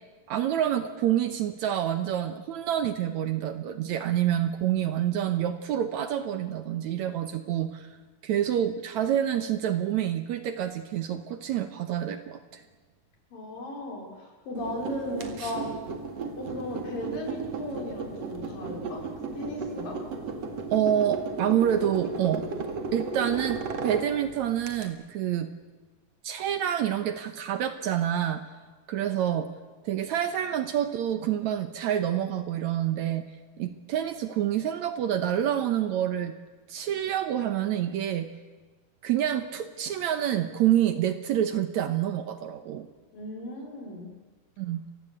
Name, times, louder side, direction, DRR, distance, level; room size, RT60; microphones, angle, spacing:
voice 1, 0.3-7.9 8.2-12.6 20.7-25.5 26.2-28.4 28.9-29.5 29.8-33.2 33.6-36.3 36.7-38.3 39.0-42.9 44.6-44.8, right 10 dB, 70° right, 10 dB, 2.0 m, -27 dB
voice 2, 13.3-15.8 16.4-19.0 19.4-20.0 43.1-44.2, left 1 dB, 75° left, 1 dB, 6.1 m, -36 dB
sound 1, 14.5-24.9, right 4 dB, 50° right, 2.9 m, -35 dB
28.5 x 16.0 x 8.1 m, 1.4 s
omnidirectional pair, 4.0 m